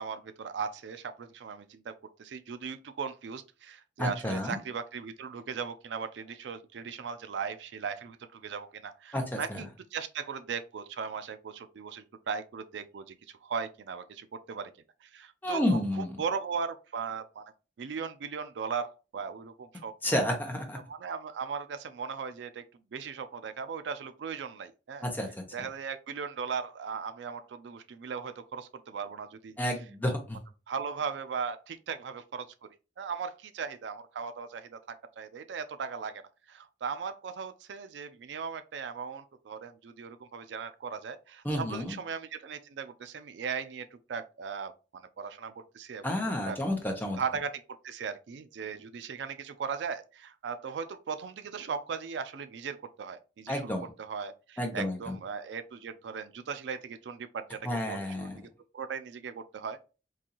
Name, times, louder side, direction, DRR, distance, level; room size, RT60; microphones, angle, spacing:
voice 1, 0.0-14.7 15.0-17.4 17.8-20.3 20.7-22.6 22.9-25.1 25.5-29.6 30.7-32.5 33.0-36.2 36.5-46.1 46.5-46.6 47.2-58.3 58.7-59.8, right 6 dB, 70° right, 0.4 m, -38 dB
voice 2, 4.0-4.6 9.1-9.6 15.4-16.1 20.0-20.8 25.0-25.3 29.6-30.4 41.4-42.0 46.0-47.2 53.5-53.9 54.6-55.1 57.6-58.4, left 1 dB, 10° left, 0.7 m, -30 dB
3.8 x 2.6 x 2.8 m
head